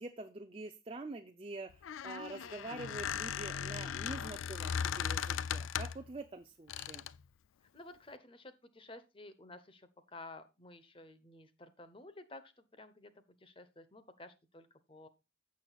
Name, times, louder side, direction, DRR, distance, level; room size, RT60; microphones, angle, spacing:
voice 1, 0.0-7.1, right 2 dB, 30° right, 0.5 m, -46 dB
Squeak, 1.7-6.1 6.7-7.2, left 8 dB, 90° left, 0.4 m, -38 dB
voice 2, 7.7-15.1, left 2 dB, 25° left, 0.9 m, -53 dB
15.0 x 6.2 x 2.4 m
head